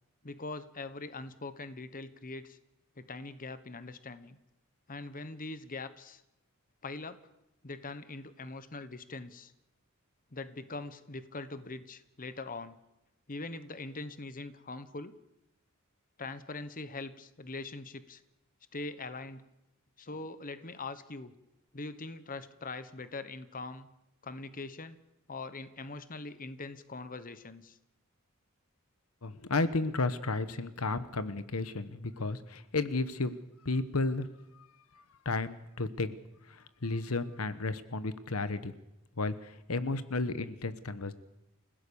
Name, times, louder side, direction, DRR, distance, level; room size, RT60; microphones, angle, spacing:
voice 1, 0.2-2.6 3.0-4.4 4.9-6.2 6.8-7.2 7.6-9.5 10.3-12.8 13.3-15.1 16.2-18.2 18.7-19.4 20.0-21.3 21.7-23.9 24.2-25.0 25.3-27.8, left 3 dB, 40° left, 12 dB, 1.2 m, -42 dB
voice 2, 29.2-33.3 33.6-34.3 34.5-34.7 34.9-36.2 36.5-38.7 39.2-41.1, left 3 dB, 80° left, 13 dB, 1.2 m, -33 dB
29.0 x 16.5 x 7.1 m, 0.90 s
head